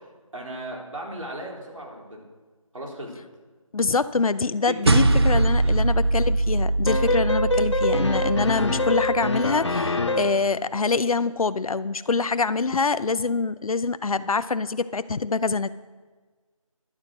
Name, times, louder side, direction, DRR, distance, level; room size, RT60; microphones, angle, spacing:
voice 1, 0.0-2.2 2.7-3.2 4.8-5.8, right 1 dB, 70° right, -1 dB, 3.7 m, -37 dB
voice 2, 3.7-15.7, left 4 dB, 80° left, 14 dB, 0.6 m, -25 dB
sound 1, 4.9-9.5, right 2 dB, 45° right, 0.6 m, -22 dB
sound 2, 6.9-10.5, left 1 dB, 55° left, 1.0 m, -25 dB
11.0 x 10.5 x 6.3 m, 1.4 s
figure-of-eight pair, 170°, 18 cm